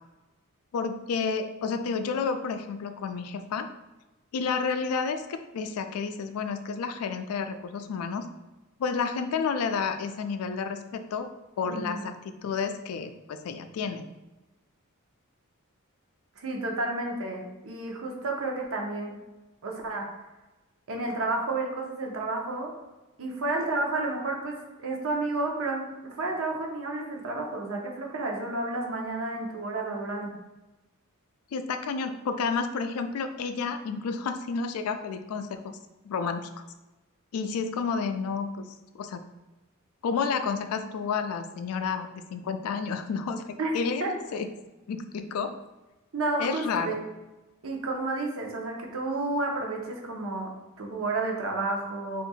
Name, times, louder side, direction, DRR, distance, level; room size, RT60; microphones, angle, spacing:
voice 1, 0.7-3.7 4.3-8.3 8.8-11.3 11.6-14.1 31.5-35.8 36.0-36.5 37.3-38.7 38.9-39.2 40.0-44.0 44.3-44.5 44.9-45.5 46.4-47.0, left 5 dB, 80° left, 8 dB, 0.3 m, -30 dB
voice 2, 11.6-12.0 16.4-19.2 19.6-20.1 20.9-22.7 23.2-30.3 43.6-43.7 44.0-44.1 46.1-47.0 47.6-50.5 50.8-52.2, right 2 dB, 65° right, 0 dB, 0.7 m, -31 dB
2.7 x 2.5 x 4.1 m, 1.1 s
head